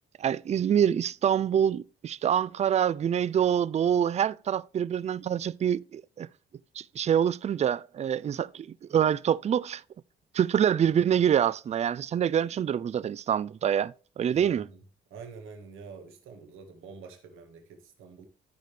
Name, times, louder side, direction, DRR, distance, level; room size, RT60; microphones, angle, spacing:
voice 1, 0.2-6.3 6.8-9.8 10.3-14.7, right 9 dB, 35° right, 0.4 m, -26 dB
voice 2, 14.3-14.8 15.1-18.3, right 5 dB, 90° right, 1.8 m, -47 dB
13.5 x 5.0 x 3.3 m
cardioid pair, 90°, 20 cm